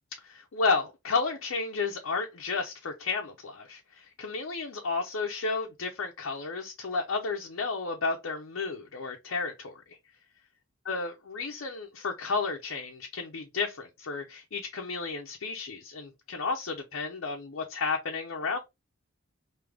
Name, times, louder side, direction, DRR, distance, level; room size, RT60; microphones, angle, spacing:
voice 1, 0.2-10.0 10.9-18.6, left 4 dB, 85° left, 0.6 m, -32 dB
3.4 x 2.7 x 3.5 m
head